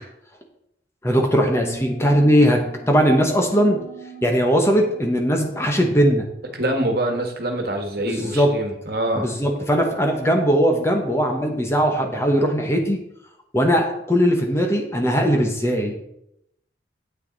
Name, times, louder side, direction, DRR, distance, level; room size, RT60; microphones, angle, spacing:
voice 1, 1.0-2.6 2.9-3.8 4.2-6.2 8.0-8.5 9.2-13.0 13.5-15.9, equal, 15° left, 2 dB, 1.2 m, -19 dB
sound 1, 1.4-6.6, right 3 dB, 30° left, 2.7 m, -42 dB
voice 2, 6.5-9.3, right 1 dB, 55° right, 3 dB, 1.7 m, -25 dB
9.2 x 8.3 x 4.0 m, 0.80 s
head